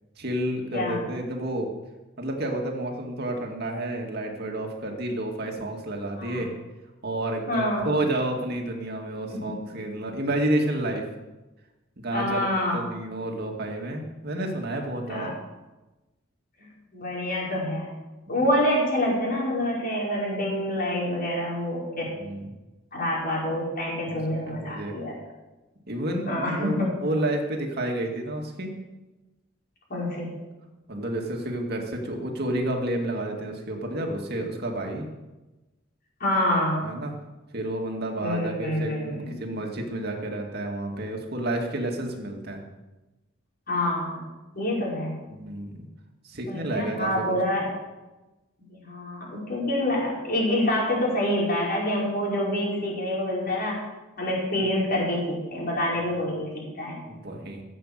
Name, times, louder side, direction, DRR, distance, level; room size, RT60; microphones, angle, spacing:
voice 1, 0.2-1.7 2.2-6.5 7.0-11.1 12.0-12.4 12.7-15.3 22.2-22.5 24.0-24.2 24.5-24.9 25.9-28.7 30.9-35.1 36.8-37.1 37.5-42.6 45.3-45.7 46.2-47.4 57.1-57.6, right 1 dB, 55° right, 1 dB, 2.1 m, -30 dB
voice 2, 7.5-7.9 9.3-9.5 12.1-12.8 15.1-15.3 16.6-17.9 18.3-22.1 22.9-25.1 26.2-26.7 29.9-30.3 36.2-36.9 38.2-39.3 43.7-44.2 44.5-45.2 46.4-47.7 48.7-53.8 54.2-56.5 56.8-57.0, left 1 dB, 50° left, -5 dB, 5.2 m, -27 dB
15.5 x 7.9 x 7.5 m, 1.1 s
head